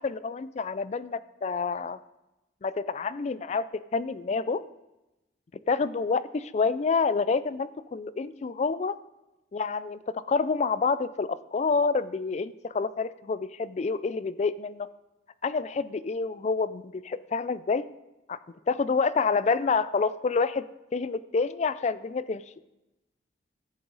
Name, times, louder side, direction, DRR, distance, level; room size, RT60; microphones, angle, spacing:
voice 1, 0.0-2.0 2.6-4.6 5.7-9.0 9.5-14.9 15.4-17.9 18.3-18.4 18.7-22.4, left 4 dB, 40° left, 16 dB, 0.3 m, -28 dB
13.5 x 7.8 x 4.0 m, 0.97 s
head